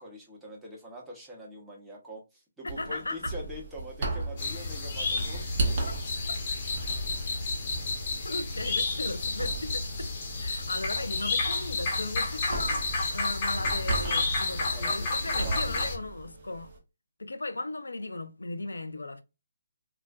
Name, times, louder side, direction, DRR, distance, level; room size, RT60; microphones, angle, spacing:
voice 1, 0.0-5.4 14.6-15.9, equal, 5° right, 0.8 m, -44 dB
voice 2, 2.6-3.3 8.2-10.1 10.4-16.7 17.2-19.2, left 2 dB, 80° left, 0.4 m, -37 dB
sound 1, 2.7-16.8, right 3 dB, 40° right, 0.8 m, -37 dB
sound 2, 4.4-16.0, left 3 dB, 30° left, 0.8 m, -31 dB
2.3 x 2.1 x 2.5 m
figure-of-eight pair, 145°, 0 cm